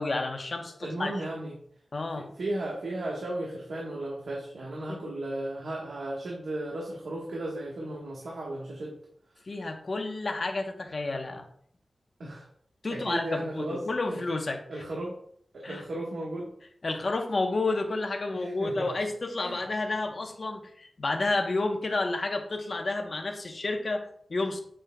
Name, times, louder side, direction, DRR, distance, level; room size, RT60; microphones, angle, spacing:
voice 1, 0.0-1.1 1.9-2.3 4.9-5.0 9.5-11.5 12.8-14.6 15.6-15.8 16.8-24.6, left 2 dB, 50° left, 4 dB, 0.9 m, -30 dB
voice 2, 0.8-1.5 2.2-8.9 12.2-12.5 12.9-13.9 14.7-15.2 15.5-16.5 18.3-18.9 19.4-19.6, right 1 dB, 85° right, -4 dB, 1.4 m, -35 dB
7.3 x 6.2 x 2.3 m, 0.62 s
wide cardioid pair, 110°, 0 cm